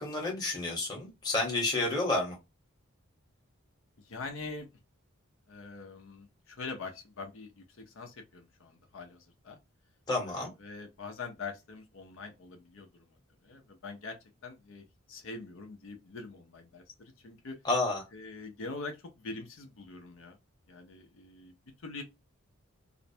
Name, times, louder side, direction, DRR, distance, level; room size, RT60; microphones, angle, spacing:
voice 1, 0.0-2.4 10.1-10.5 17.6-18.1, left 2 dB, 20° left, 0.9 m, -30 dB
voice 2, 4.0-4.7 5.5-9.6 10.2-14.2 14.4-17.6 18.1-20.4 20.7-22.0, left 3 dB, 65° left, 0.5 m, -44 dB
2.5 x 2.1 x 2.6 m
head